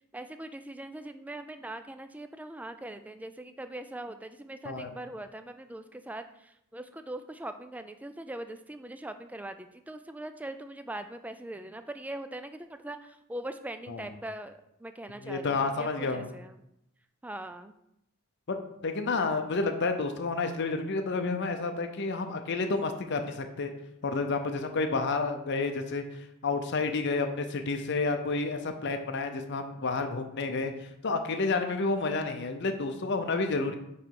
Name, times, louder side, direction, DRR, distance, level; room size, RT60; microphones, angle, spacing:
voice 1, 0.1-16.6 17.2-17.7, right 1 dB, 5° right, 9 dB, 0.3 m, -41 dB
voice 2, 15.2-16.3 18.5-23.7 24.0-26.0 26.4-30.7 31.0-33.7, left 3 dB, 55° left, 6 dB, 0.6 m, -30 dB
8.9 x 3.2 x 4.6 m, 0.81 s
head